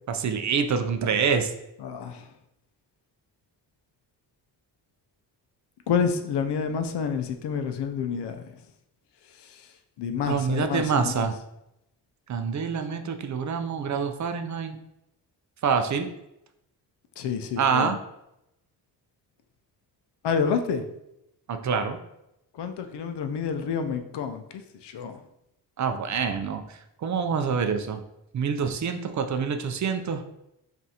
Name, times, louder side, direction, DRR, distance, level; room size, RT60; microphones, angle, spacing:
voice 1, 0.1-1.5 10.3-11.3 12.3-14.8 15.6-16.1 17.6-18.0 21.5-22.0 25.8-28.0 28.3-30.2, right 6 dB, 45° right, 7 dB, 0.4 m, -26 dB
voice 2, 1.8-2.2 5.9-8.4 10.0-11.3 17.2-17.9 20.2-20.8 22.6-24.4 24.8-25.2, left 6 dB, 80° left, 7 dB, 0.6 m, -28 dB
5.4 x 2.5 x 2.8 m, 0.84 s
cardioid pair, 100°, 41 cm